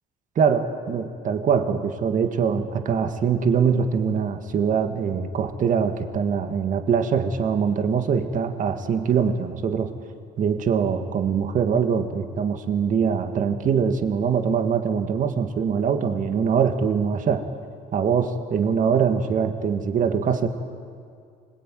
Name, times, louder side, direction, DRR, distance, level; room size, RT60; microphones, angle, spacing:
voice 1, 0.4-9.9 10.4-17.4 17.9-20.5, right 6 dB, 50° right, 7 dB, 2.0 m, -23 dB
26.0 x 20.5 x 9.3 m, 2.3 s
cardioid pair, 110°, 17 cm